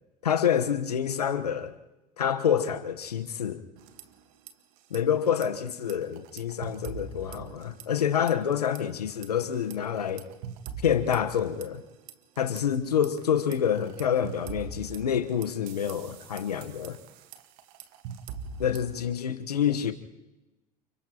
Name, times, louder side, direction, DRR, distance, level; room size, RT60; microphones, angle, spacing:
voice 1, 0.2-1.7 2.2-3.6 4.9-10.3 10.8-11.8 12.4-17.0 18.6-19.9, left 8 dB, 85° left, 1.2 m, -27 dB
sound 1, 3.8-4.5 4.8-5.0 5.4-8.0 8.3-8.8 9.2-12.6 13.0-19.0, right 6 dB, 65° right, 1.6 m, -43 dB
29.5 x 29.0 x 3.0 m
hypercardioid pair, 75°, 20 cm